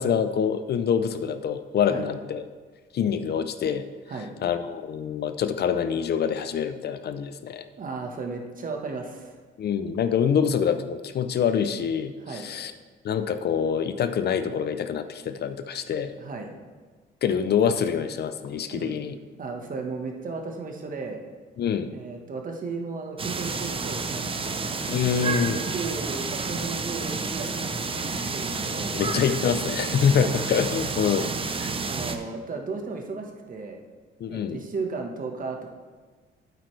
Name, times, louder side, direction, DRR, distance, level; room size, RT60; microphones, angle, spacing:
voice 1, 0.0-2.4 2.9-3.9 4.4-7.6 9.6-12.7 13.0-16.1 17.2-19.2 21.6-21.9 24.9-25.6 28.9-31.3 31.6-31.7 34.2-34.6, left 7 dB, 55° left, 11 dB, 0.5 m, -25 dB
voice 2, 7.8-9.3 12.2-12.5 16.2-16.5 18.7-19.0 19.4-21.2 21.9-24.8 25.2-28.9 30.1-30.4 31.8-33.8 34.3-35.7, right 4 dB, 45° right, 3 dB, 1.3 m, -35 dB
sound 1, 23.2-32.2, right 4 dB, 25° right, 0.7 m, -30 dB
8.8 x 8.2 x 3.2 m, 1.4 s
cardioid pair, 90°, 20 cm